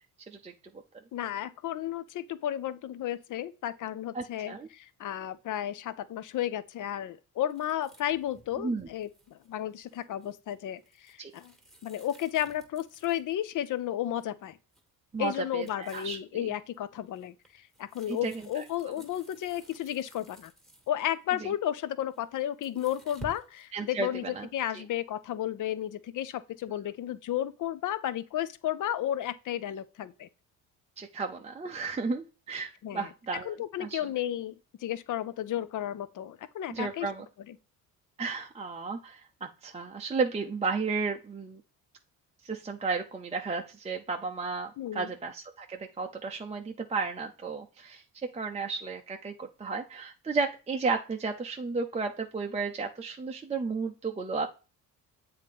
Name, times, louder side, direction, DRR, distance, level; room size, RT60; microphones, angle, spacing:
voice 1, 1.1-11.5 11.8-14.6 15.2-17.3 17.8-20.5 20.9-30.3 32.8-33.1 33.4-34.5 34.8-37.1 37.5-37.6 44.8-45.1, left 11 dB, 55° left, 0.6 m, -33 dB
voice 2, 4.1-4.7 8.6-8.9 11.2-11.3 15.1-16.5 18.1-18.6 21.4-21.5 23.7-24.5 24.7-24.8 31.0-34.0 36.7-37.3 38.2-41.6 42.4-48.0 48.3-54.5, right 4 dB, 15° right, 0.6 m, -33 dB
sound 1, 7.5-13.6 14.1-14.4 14.7-14.9 15.2-16.3 16.7-21.2 22.0-23.7, right 2 dB, ahead, 1.7 m, -53 dB
7.4 x 2.8 x 5.2 m
supercardioid pair, 75°, 38 cm